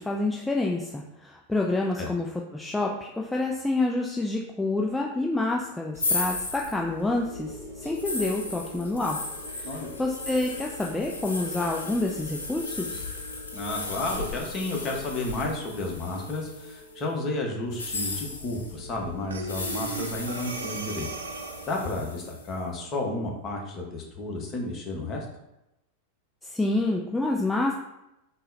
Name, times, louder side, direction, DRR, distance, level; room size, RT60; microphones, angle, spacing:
voice 1, 0.0-2.3 2.5-9.2 9.6-13.0 26.4-27.7, left 2 dB, 5° left, -1 dB, 0.3 m, -28 dB
sound 1, 5.9-16.9 17.7-22.5, left 3 dB, 75° left, 0.5 m, -36 dB
sound 2, 7.2-23.7, right 1 dB, 15° right, 1.1 m, -47 dB
voice 2, 13.5-21.1 21.7-25.3, left 2 dB, 30° left, 0 dB, 0.8 m, -32 dB
Breathing, 19.3-21.9, right 4 dB, 70° right, 0.4 m, -36 dB
3.8 x 2.0 x 3.8 m, 0.89 s
figure-of-eight pair, 90°, 0 cm